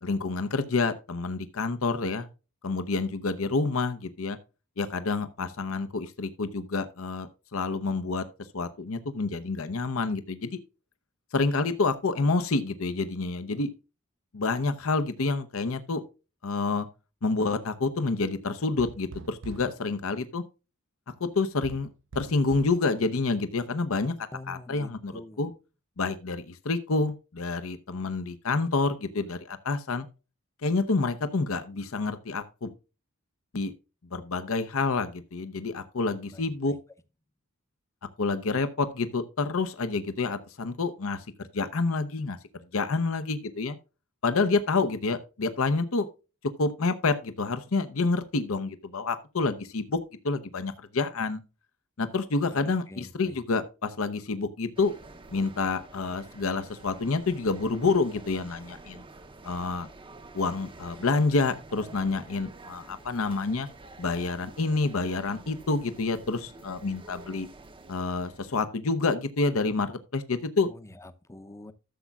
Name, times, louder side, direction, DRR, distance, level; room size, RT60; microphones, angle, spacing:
voice 1, 0.0-2.3 2.6-4.4 4.8-8.2 8.5-10.6 11.3-13.7 14.3-16.0 16.4-16.9 17.2-20.4 21.2-21.9 22.1-24.2 24.5-25.1 25.4-25.5 26.0-30.1 30.6-32.7 33.5-33.7 34.1-36.7 38.2-41.3 41.5-42.4 42.7-43.8 44.2-46.1 46.6-50.0 50.2-51.4 52.0-54.9 55.3-59.0 59.4-59.9 60.3-63.7 64.0-67.5 67.9-70.7, left 3 dB, 70° left, 0.8 m, -28 dB
sound 1, 18.8-19.8 21.6-22.8, right 3 dB, 60° right, 0.6 m, -43 dB
voice 2, 24.3-25.5 36.3-36.8 52.5-53.4 70.7-71.7, left 2 dB, 15° left, 0.7 m, -46 dB
sound 2, 54.8-68.6, right 2 dB, 25° right, 0.7 m, -49 dB
14.0 x 7.2 x 2.4 m
head